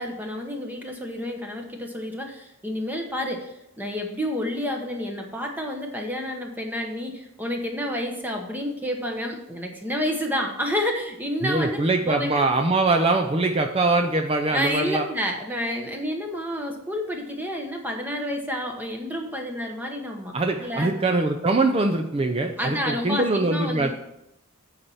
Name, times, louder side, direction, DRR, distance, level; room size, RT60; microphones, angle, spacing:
voice 1, 0.0-11.8 12.1-12.5 14.5-20.3 20.6-20.9 22.6-23.9, equal, 10° right, 2 dB, 1.0 m, -29 dB
voice 2, 11.4-15.1 20.3-23.9, right 2 dB, 25° right, 5 dB, 0.5 m, -23 dB
8.7 x 4.1 x 7.1 m, 0.85 s
head